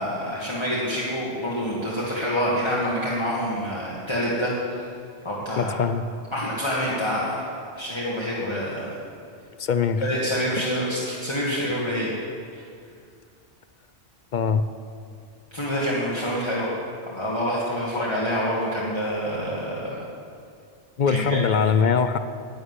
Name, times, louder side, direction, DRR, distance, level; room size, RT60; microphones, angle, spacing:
voice 1, 0.0-4.5 5.2-5.8 6.3-7.4 7.7-8.9 10.0-12.1 12.5-12.6 15.5-16.7 17.1-20.1 21.1-21.4, equal, 25° left, -7 dB, 1.9 m, -27 dB
voice 2, 5.6-6.1 9.6-10.1 14.3-14.6 21.0-22.2, left 6 dB, 55° left, 11 dB, 0.6 m, -22 dB
11.0 x 9.0 x 9.6 m, 2.3 s
omnidirectional pair, 1.2 m